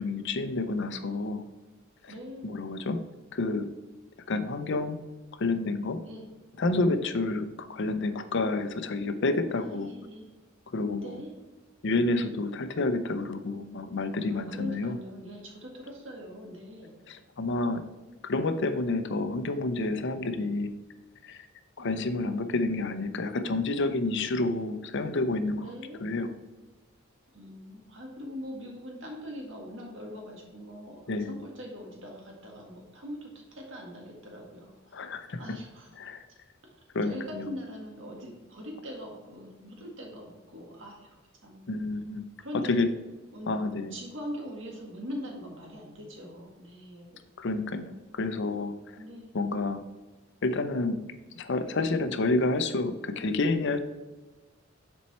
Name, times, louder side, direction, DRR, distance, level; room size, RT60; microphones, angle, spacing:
voice 1, 0.0-1.4 2.0-2.1 2.4-3.0 3.3-3.7 4.3-5.0 5.4-6.0 6.6-9.9 10.7-11.2 11.8-15.0 17.1-17.8 18.2-20.7 21.2-21.4 21.8-25.6 26.0-26.3 31.1-31.4 34.9-35.4 36.0-36.2 36.9-37.5 41.7-42.2 42.7-42.9 43.5-44.0 47.4-48.7 49.3-49.8 50.4-51.0 51.4-53.8, left 2 dB, 60° left, 10 dB, 0.6 m, -29 dB
voice 2, 2.1-2.6 6.0-6.3 9.6-10.3 11.0-11.4 14.3-16.9 21.8-22.6 25.6-26.1 27.3-35.0 35.4-35.9 37.0-41.7 42.4-42.8 43.3-43.5 43.9-47.2 49.0-49.3, equal, 70° right, 0 dB, 1.9 m, -42 dB
7.3 x 4.5 x 4.3 m, 1.2 s
head